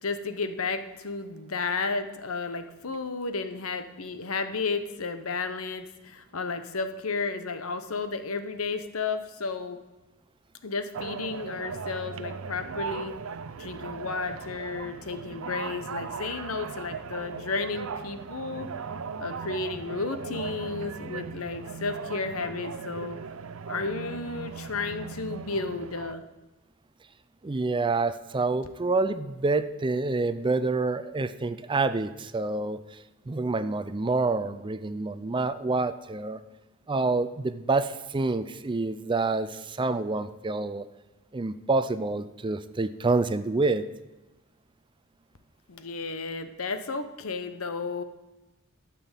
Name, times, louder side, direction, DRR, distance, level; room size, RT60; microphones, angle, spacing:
voice 1, 0.0-9.8 10.6-13.1 13.6-18.7 19.2-23.2 23.7-26.2 45.7-48.0, left 4 dB, 80° left, 9 dB, 1.0 m, -33 dB
sound 1, 10.9-26.1, right 5 dB, 70° right, 0.5 m, -38 dB
voice 2, 27.4-36.4 36.9-40.9 41.3-43.9, right 3 dB, 25° right, 13 dB, 0.4 m, -27 dB
12.5 x 6.0 x 7.3 m, 1.1 s
head